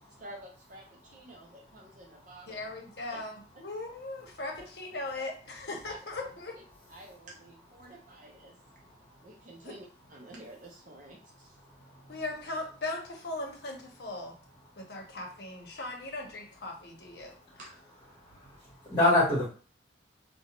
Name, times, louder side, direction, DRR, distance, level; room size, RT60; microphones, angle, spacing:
voice 1, 0.2-2.7 3.1-3.2 3.5-3.6 4.6-4.7 5.8-6.6 6.9-8.6 9.2-11.6 17.6-17.7, right 1 dB, 45° right, -1 dB, 0.5 m, -50 dB
voice 2, 2.5-3.3 3.6-6.5 9.6-9.7 12.1-14.4 14.8-17.3, left 2 dB, 60° left, 0 dB, 0.8 m, -38 dB
voice 3, 8.7-9.3 11.6-12.2 14.8-15.0 17.3-17.6 18.1-19.5, left 2 dB, 25° left, -8 dB, 1.1 m, -30 dB
2.4 x 2.1 x 2.9 m, 0.41 s
head